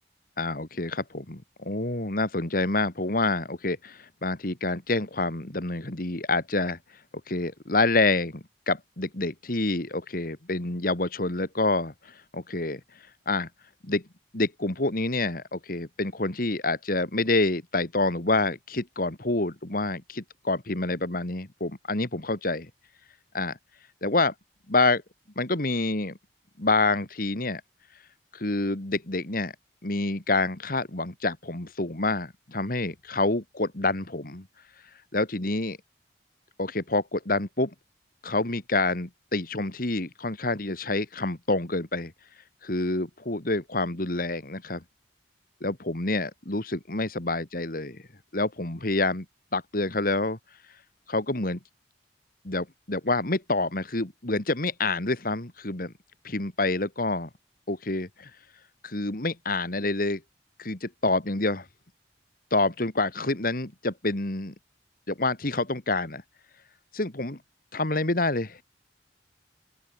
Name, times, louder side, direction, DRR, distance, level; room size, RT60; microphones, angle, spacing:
voice 1, 0.4-6.8 7.3-12.8 13.3-13.5 13.8-14.0 14.3-22.7 23.3-23.6 24.0-24.3 24.7-25.0 25.4-26.2 26.6-27.6 28.3-29.5 29.8-34.5 35.1-35.8 36.6-37.7 38.2-42.1 42.6-44.8 45.6-48.0 48.3-49.3 49.5-50.4 51.1-51.6 52.4-55.9 56.2-57.3 57.7-58.3 58.8-60.2 60.6-61.7 62.5-64.5 65.1-66.2 66.9-67.4 67.7-68.6, left 2 dB, 55° left, 2.2 m, -27 dB
open air
head